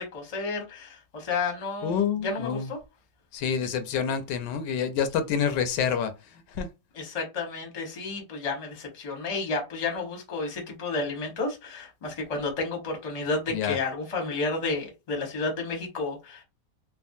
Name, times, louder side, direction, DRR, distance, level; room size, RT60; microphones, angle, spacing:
voice 1, 0.0-2.8 6.9-16.4, left 3 dB, 30° left, 0.7 m, -31 dB
voice 2, 1.8-2.7 3.3-6.1 6.6-6.7 13.5-13.8, left 7 dB, 85° left, 1.2 m, -27 dB
3.3 x 2.0 x 2.6 m
omnidirectional pair, 1.9 m